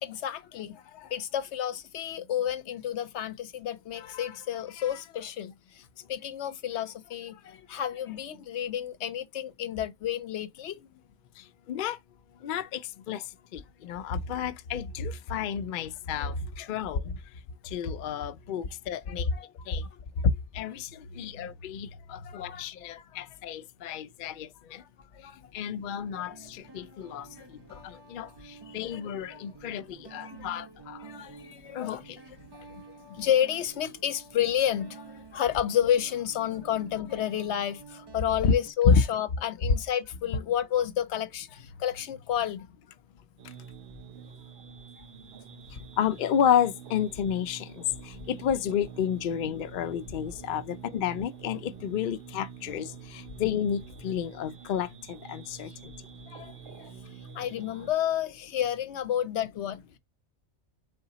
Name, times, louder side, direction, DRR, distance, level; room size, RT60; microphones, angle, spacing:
voice 1, 0.0-10.9 16.1-16.3 16.6-16.7 19.3-19.5 21.1-21.5 22.1-23.3 23.9-24.0 24.8-24.9 25.1-25.5 26.9-27.0 27.4-27.9 28.7-29.4 30.1-30.5 31.0-42.7 45.0-45.1 56.3-56.9 57.3-60.0, left 10 dB, 80° left, 0.9 m, -31 dB
voice 2, 11.4-12.0 12.4-13.2 13.5-17.2 17.6-19.3 19.7-19.8 20.2-24.8 25.5-27.3 27.7-31.1 31.7-32.2 38.4-38.5 38.8-39.0 45.7-55.9, left 7 dB, 60° left, 0.6 m, -30 dB
Guitar, 24.8-25.1 26.1-38.7, right 4 dB, 25° right, 0.7 m, -50 dB
sound 1, 43.4-57.9, right 7 dB, 60° right, 0.8 m, -47 dB
4.1 x 3.9 x 2.7 m
omnidirectional pair, 1.2 m